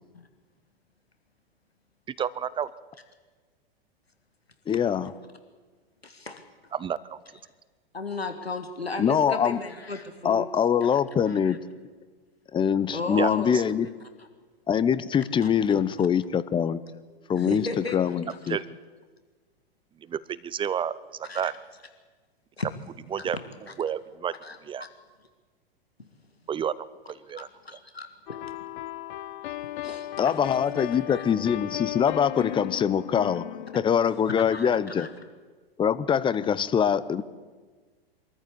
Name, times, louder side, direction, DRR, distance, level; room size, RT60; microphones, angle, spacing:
voice 1, 2.2-2.7 6.7-7.2 13.2-13.6 18.5-18.6 20.0-21.5 23.1-23.4 23.8-24.3 24.6-24.8 26.5-26.8 27.1-27.5, right 8 dB, 15° right, 18 dB, 0.6 m, -30 dB
voice 2, 4.7-5.1 9.0-9.6 10.2-11.6 12.5-13.9 14.7-16.8 17.3-17.6 17.9-18.6 30.2-33.4 33.7-35.1 35.8-37.2, left 8 dB, 15° left, 16 dB, 0.7 m, -24 dB
voice 3, 6.0-6.4 7.9-10.5 10.9-11.0 11.3-11.6 12.9-13.6 14.2-14.3 15.4-15.5 17.3-18.6 21.3-21.5 22.6-22.7 23.2-23.3 23.7-23.8 24.4-24.6 27.4-28.4 29.8-30.5 30.8-31.2 34.4-34.7 35.0-35.1, left 3 dB, 90° left, 7 dB, 1.8 m, -36 dB
sound 1, 28.3-35.0, left 14 dB, 55° left, 0.8 m, -36 dB
24.0 x 13.5 x 8.3 m, 1.5 s
figure-of-eight pair, 95°, 30 cm